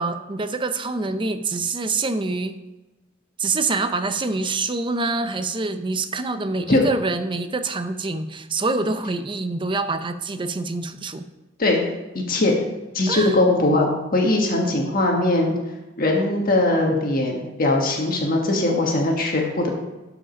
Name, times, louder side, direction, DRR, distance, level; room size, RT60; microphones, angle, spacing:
voice 1, 0.0-2.6 3.4-11.2 13.1-13.4, right 3 dB, 25° right, 9 dB, 0.6 m, -26 dB
voice 2, 12.1-12.5 12.9-15.6 16.0-19.7, left 2 dB, 45° left, 0 dB, 1.4 m, -20 dB
12.0 x 5.0 x 5.1 m, 1.1 s
head